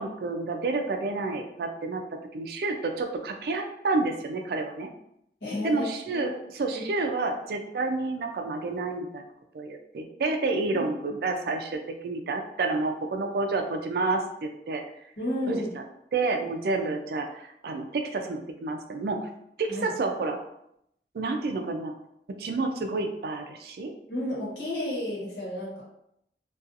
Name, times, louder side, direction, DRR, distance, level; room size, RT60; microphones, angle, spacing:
voice 1, 0.0-2.0 2.3-4.9 5.6-9.2 9.5-14.8 15.5-15.6 16.1-19.3 19.6-20.4 21.1-21.9 22.3-23.9, right 3 dB, 55° right, 5 dB, 0.3 m, -29 dB
voice 2, 5.4-6.4 6.7-6.8 10.7-10.8 15.2-15.7 19.7-19.9 24.1-25.8, left 1 dB, 75° left, -6 dB, 1.1 m, -32 dB
2.6 x 2.3 x 2.4 m, 0.76 s
head